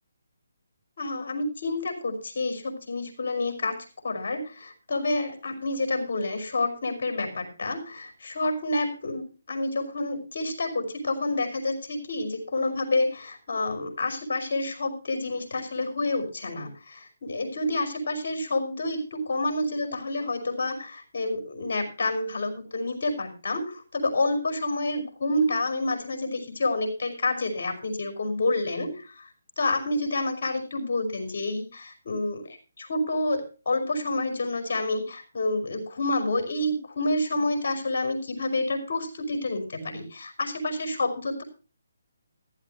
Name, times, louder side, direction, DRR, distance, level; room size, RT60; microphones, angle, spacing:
voice 1, 1.0-3.8 4.0-29.3 29.6-32.4 32.8-41.4, left 2 dB, 60° left, 6 dB, 5.2 m, -28 dB
15.0 x 12.5 x 2.9 m, 0.34 s
figure-of-eight pair, 155°, 0 cm